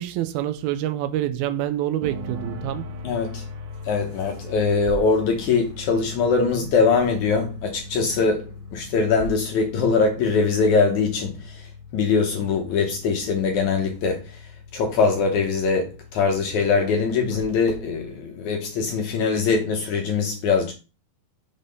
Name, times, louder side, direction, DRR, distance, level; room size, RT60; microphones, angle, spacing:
voice 1, 0.0-2.9, right 12 dB, 85° right, 2.5 m, -27 dB
sound 1, 2.0-18.1, left 3 dB, 65° right, 1.7 m, -40 dB
voice 2, 3.0-3.5 3.8-11.7 11.9-14.4 14.7-20.7, left 4 dB, 70° left, 1.9 m, -22 dB
6.4 x 4.1 x 5.2 m
omnidirectional pair, 4.3 m